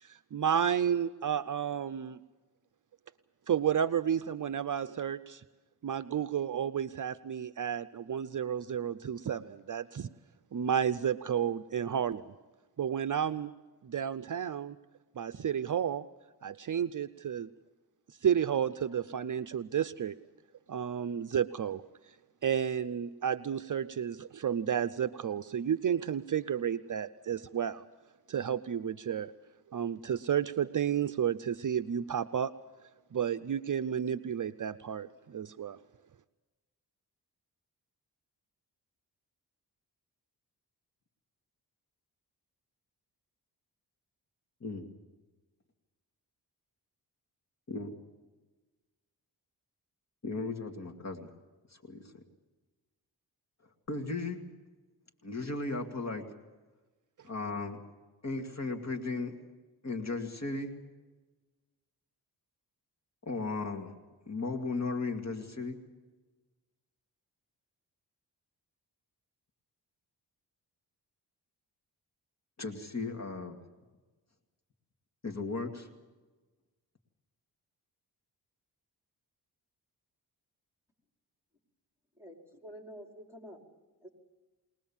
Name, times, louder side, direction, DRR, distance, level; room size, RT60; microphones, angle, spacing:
voice 1, 0.0-2.2 3.5-5.4 5.8-10.1 10.5-12.2 12.8-13.5 13.8-14.8 15.2-16.1 16.4-17.5 18.2-20.1 20.7-21.8 22.4-27.8 28.3-29.3 29.7-32.5 33.1-35.8, right 8 dB, 50° right, 12 dB, 0.6 m, -31 dB
voice 2, 44.6-44.9 47.7-47.9 50.2-51.3 51.7-52.2 53.9-54.4 55.2-56.3 57.2-57.8 58.2-59.3 59.8-60.7 63.2-63.9 64.3-65.8 72.6-73.6 75.2-75.9, left 3 dB, 40° left, 3 dB, 2.5 m, -36 dB
voice 3, 82.2-83.6 84.0-84.1, equal, 5° right, 2 dB, 4.9 m, -48 dB
22.5 x 20.0 x 7.3 m, 1.2 s
cardioid pair, 75°, 40 cm